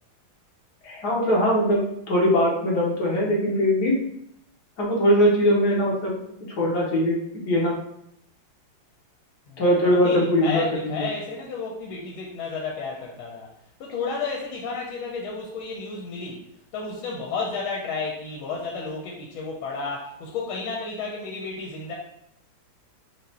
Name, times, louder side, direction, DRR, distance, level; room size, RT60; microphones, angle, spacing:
voice 1, 0.8-4.0 4.8-6.2 6.5-7.7 9.6-10.6, equal, 55° left, -4 dB, 1.6 m, -21 dB
voice 2, 9.9-13.5 13.8-16.4 16.7-21.9, left 4 dB, 90° left, -1 dB, 1.6 m, -32 dB
4.8 x 2.4 x 4.2 m, 0.76 s
omnidirectional pair, 2.2 m